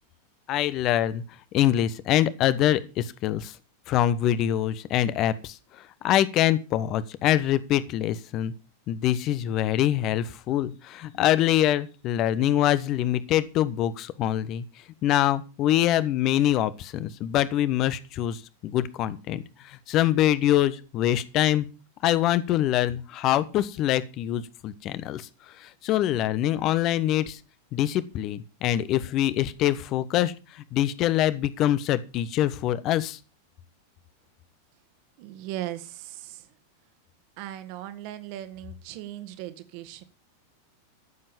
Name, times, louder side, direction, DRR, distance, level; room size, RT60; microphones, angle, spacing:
voice 1, 0.5-1.2 1.5-3.5 3.9-5.6 6.0-8.5 8.9-14.6 15.0-21.7 22.0-25.3 25.6-27.4 27.7-33.2, left 12 dB, 35° left, 16 dB, 1.2 m, -24 dB
voice 2, 35.2-36.4 37.4-40.0, right 13 dB, 45° right, 12 dB, 1.9 m, -38 dB
14.0 x 7.7 x 7.1 m, 0.33 s
figure-of-eight pair, 90°, 0 cm